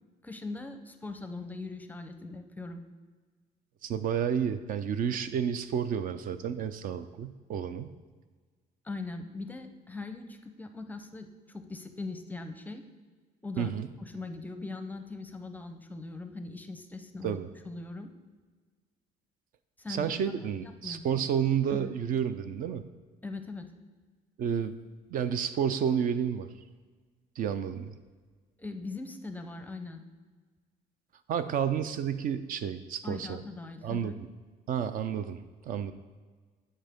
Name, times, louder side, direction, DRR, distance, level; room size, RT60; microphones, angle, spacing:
voice 1, 0.2-2.8 8.8-12.8 13.4-13.7 14.0-17.4 17.7-18.1 19.8-20.1 20.6-21.0 21.7-21.9 23.2-23.7 28.6-30.0 33.0-34.2, left 3 dB, 10° left, 7 dB, 0.6 m, -40 dB
voice 2, 3.8-7.9 13.6-13.9 17.2-17.5 19.9-22.8 24.4-24.8 25.1-26.5 27.4-27.9 31.3-33.4 33.8-34.1 34.7-35.9, right 8 dB, 55° right, 11 dB, 0.4 m, -30 dB
11.5 x 4.4 x 3.5 m, 1.4 s
cardioid pair, 110°, 17 cm